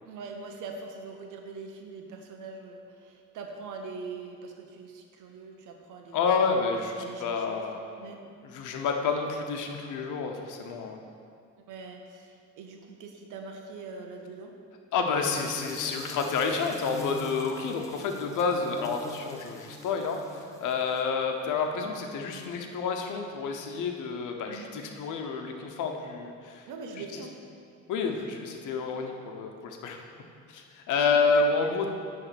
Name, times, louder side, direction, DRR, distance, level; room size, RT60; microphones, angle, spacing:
voice 1, 0.0-6.3 7.0-7.6 8.0-8.2 11.7-14.5 15.0-15.3 24.5-24.7 26.7-27.3 31.3-31.4, right 4 dB, 85° right, 3 dB, 1.0 m, -42 dB
voice 2, 6.1-7.8 8.4-11.0 14.9-26.7 27.1-27.2 27.9-30.0 30.5-31.9, left 4 dB, 90° left, 3 dB, 1.0 m, -29 dB
sound 1, 15.2-21.2, left 1 dB, 10° left, 1.0 m, -43 dB
10.0 x 3.5 x 6.9 m, 2.4 s
cardioid pair, 90°, 30 cm